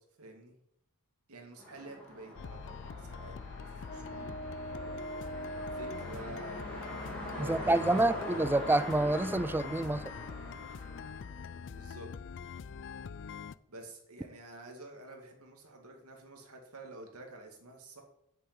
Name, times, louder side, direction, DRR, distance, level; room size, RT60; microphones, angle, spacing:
voice 1, 0.2-0.6 1.3-3.4 3.7-5.0 5.7-6.6 7.3-8.5 11.7-12.1 13.7-18.0, right 2 dB, 80° right, 2.4 m, -49 dB
sound 1, 1.6-11.8, equal, 5° left, 3.5 m, -44 dB
sound 2, 2.4-13.6, left 6 dB, 60° left, 0.4 m, -44 dB
Brass instrument, 3.9-10.6, right 1 dB, 40° left, 0.9 m, -45 dB
voice 2, 7.4-10.0, right 2 dB, 10° right, 0.3 m, -28 dB
8.1 x 6.9 x 7.7 m
head